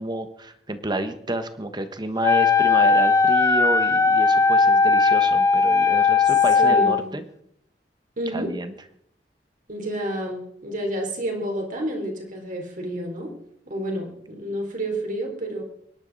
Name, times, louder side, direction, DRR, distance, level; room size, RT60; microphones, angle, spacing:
voice 1, 0.0-7.2 8.3-8.7, right 1 dB, 25° right, 9 dB, 1.3 m, -30 dB
Wind instrument woodwind instrument, 2.2-7.0, left 4 dB, 15° left, 0.6 m, -18 dB
voice 2, 6.6-7.1 8.2-8.5 9.7-13.3 13.7-15.6, right 1 dB, 50° right, 2 dB, 3.8 m, -29 dB
24.5 x 11.0 x 4.1 m, 0.71 s
head